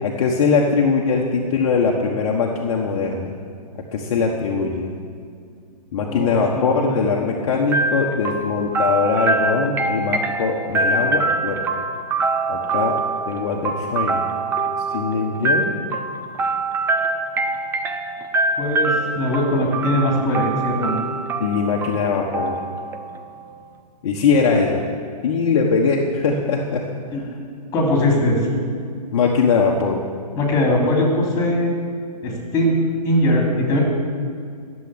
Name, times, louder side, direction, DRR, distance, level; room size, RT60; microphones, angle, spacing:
voice 1, 0.0-3.3 3.9-4.9 5.9-11.6 12.5-13.0 13.3-14.2 14.9-15.7 21.4-22.6 24.0-24.8 25.2-26.8 27.2-27.3 29.1-30.0, left 5 dB, 45° left, -1 dB, 1.4 m, -21 dB
voice 2, 6.1-7.0 18.6-21.0 27.1-27.3 27.7-28.6 30.3-31.7 32.2-32.8 33.0-33.8, left 1 dB, 20° left, 0 dB, 3.2 m, -20 dB
sound 1, 7.7-23.5, right 3 dB, 10° right, 0.7 m, -24 dB
12.0 x 7.8 x 9.8 m, 2.2 s
figure-of-eight pair, 125°, 21 cm